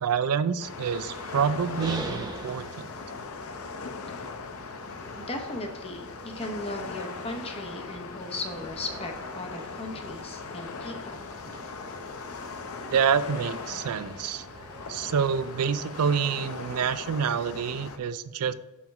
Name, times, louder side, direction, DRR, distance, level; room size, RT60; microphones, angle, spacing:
voice 1, 0.0-2.9 12.9-14.4 14.9-18.5, right 7 dB, 75° right, 14 dB, 0.4 m, -27 dB
sound 1, 0.6-18.0, left 4 dB, 65° left, 0.6 m, -39 dB
sound 2, 0.7-16.1, right 2 dB, 20° right, 0.6 m, -45 dB
voice 2, 5.2-11.3, left 2 dB, 25° left, 4 dB, 0.9 m, -37 dB
5.7 x 4.5 x 5.3 m, 1.1 s
head